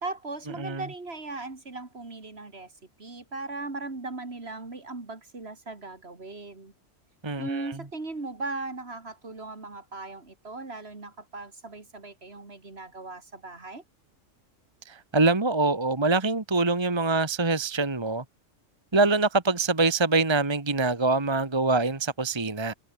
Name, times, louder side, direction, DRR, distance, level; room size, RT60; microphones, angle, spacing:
voice 1, 0.0-2.7 3.0-6.7 7.4-13.8, right 3 dB, 55° right, 3.1 m, -38 dB
voice 2, 7.2-7.7 14.8-18.2 18.9-22.7, right 3 dB, 20° right, 1.4 m, -24 dB
omnidirectional pair, 1.3 m